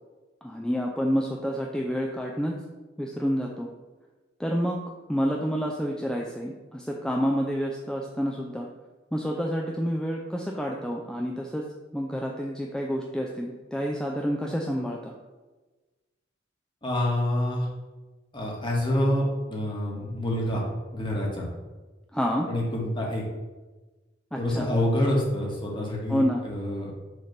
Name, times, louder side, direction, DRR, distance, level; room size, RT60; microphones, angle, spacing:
voice 1, 0.4-2.5 3.0-3.7 4.4-4.8 5.1-8.7 9.1-11.6 11.9-15.1 22.1-22.5 24.3-24.7 26.1-26.4, equal, 5° left, -1 dB, 0.5 m, -28 dB
voice 2, 16.8-17.7 18.3-20.6 20.9-21.5 22.5-23.2 24.4-26.9, left 1 dB, 25° left, -2 dB, 1.6 m, -27 dB
6.5 x 3.4 x 5.8 m, 1.2 s
head